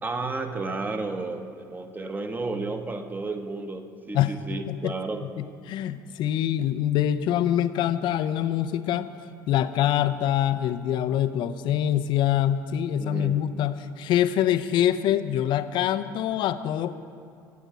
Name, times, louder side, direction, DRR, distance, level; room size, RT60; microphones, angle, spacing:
voice 1, 0.0-5.2 13.0-13.4, right 3 dB, 15° right, 6 dB, 1.2 m, -32 dB
voice 2, 4.1-5.0 5.4-9.1 9.5-16.9, left 11 dB, 45° left, 12 dB, 0.7 m, -25 dB
23.5 x 9.1 x 4.9 m, 2.4 s
figure-of-eight pair, 65°, 11 cm